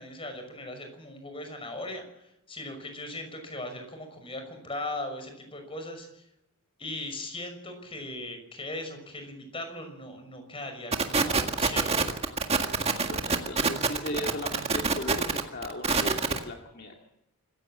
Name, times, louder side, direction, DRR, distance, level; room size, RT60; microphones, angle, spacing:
voice 1, 0.0-6.3 6.8-12.2, left 1 dB, 25° left, 6 dB, 5.8 m, -39 dB
sound 1, 10.9-16.4, right 4 dB, 30° right, 1.8 m, -25 dB
voice 2, 12.9-17.0, left 1 dB, 45° left, 2 dB, 2.3 m, -37 dB
25.5 x 15.5 x 7.4 m, 0.84 s
head